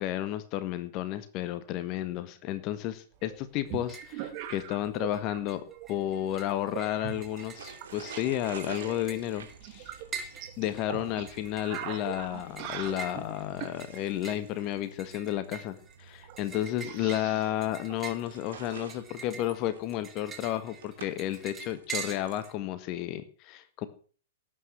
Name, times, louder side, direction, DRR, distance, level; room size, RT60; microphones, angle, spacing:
voice 1, 0.0-9.9 10.6-23.9, left 13 dB, 35° left, 13 dB, 1.6 m, -32 dB
sound 1, 3.2-5.4 5.7-6.2 6.7-8.2 8.5-13.8 15.5-15.6 15.8-15.9 16.2-18.8, right 11 dB, 40° right, 2.6 m, -42 dB
sound 2, 3.7-4.2 4.5-5.2 5.5-22.5, right 6 dB, 20° right, 2.9 m, -44 dB
sound 3, 7.1-22.5, right 6 dB, 60° right, 3.1 m, -50 dB
18.0 x 9.2 x 7.5 m, 0.42 s
figure-of-eight pair, 105°, 0 cm